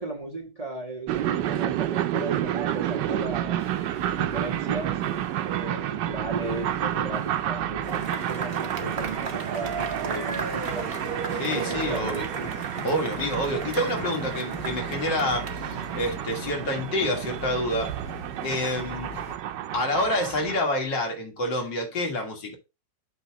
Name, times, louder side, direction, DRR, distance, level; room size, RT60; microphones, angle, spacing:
voice 1, 0.0-3.6 4.2-5.0 5.5-10.9 11.5-12.5, right 2 dB, 20° right, 1.5 m, -36 dB
sound 1, 1.1-20.6, right 12 dB, 75° right, 1.3 m, -30 dB
sound 2, 2.7-19.4, left 7 dB, 60° left, 1.3 m, -44 dB
Cheering / Applause / Crowd, 7.8-16.5, right 5 dB, 40° right, 1.0 m, -35 dB
voice 2, 11.3-12.3 12.8-18.0 18.4-19.1 19.7-22.5, left 1 dB, 75° left, 2.5 m, -28 dB
8.0 x 2.9 x 5.8 m
omnidirectional pair, 1.9 m